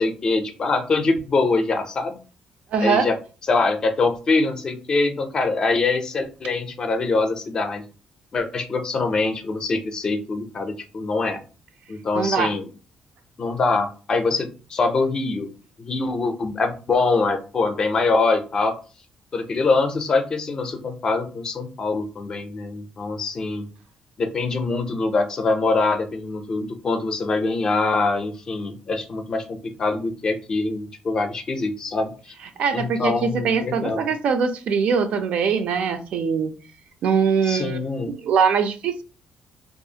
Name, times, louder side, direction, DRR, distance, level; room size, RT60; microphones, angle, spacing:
voice 1, 0.0-2.2 2.8-3.1 3.4-7.8 8.3-11.4 11.9-12.7 13.4-15.5 15.8-18.8 19.3-23.6 24.2-32.3 32.7-34.1 37.4-38.1, left 3 dB, 35° left, 6 dB, 0.4 m, -24 dB
voice 2, 2.7-3.1 12.1-12.5 32.6-36.5 37.0-37.8 38.1-39.0, right 6 dB, 60° right, 7 dB, 0.3 m, -22 dB
2.4 x 2.4 x 2.7 m, 0.36 s
cardioid pair, 145°, 2 cm